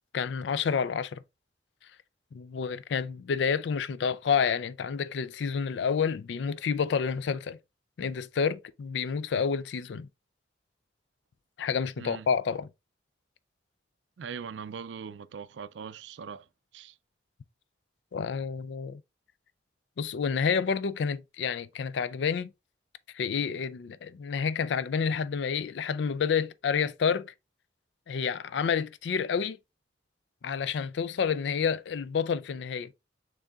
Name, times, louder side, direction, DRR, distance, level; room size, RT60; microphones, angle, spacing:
voice 1, 0.1-1.2 2.3-7.6 8.0-10.1 11.6-12.7 18.1-19.0 20.0-22.5 23.1-27.3 28.1-29.6 30.4-32.9, left 6 dB, 70° left, 0.4 m, -29 dB
voice 2, 12.0-12.3 14.2-16.5 16.7-17.0, right 6 dB, 75° right, 0.4 m, -41 dB
6.4 x 3.5 x 2.3 m
head